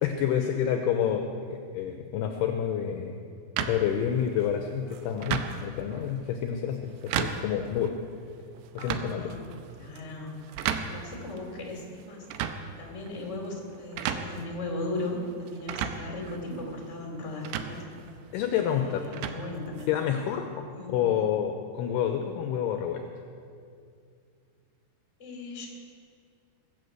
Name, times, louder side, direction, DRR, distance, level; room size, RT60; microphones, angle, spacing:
voice 1, 0.0-3.2 3.6-7.9 8.7-9.3 18.3-19.1 19.9-23.0, left 9 dB, 75° left, 5 dB, 2.5 m, -28 dB
sound 1, 3.6-20.2, right 8 dB, 80° right, 2.8 m, -37 dB
voice 2, 8.7-10.5 10.8-12.3 12.8-17.8 18.7-19.9 20.7-21.0 25.2-25.7, left 2 dB, 20° left, 0 dB, 2.5 m, -37 dB
20.5 x 8.6 x 8.0 m, 2.4 s
omnidirectional pair, 5.2 m